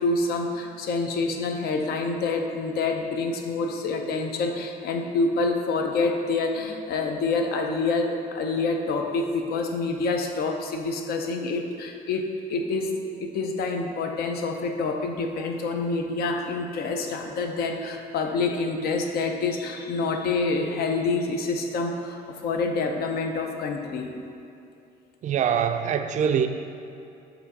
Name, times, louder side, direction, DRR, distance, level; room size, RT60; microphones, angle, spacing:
voice 1, 0.0-24.1, left 3 dB, 65° left, 4 dB, 0.6 m, -27 dB
voice 2, 25.2-26.5, right 8 dB, 45° right, 7 dB, 0.4 m, -23 dB
6.9 x 2.7 x 5.3 m, 2.7 s
cardioid pair, 110°, 17 cm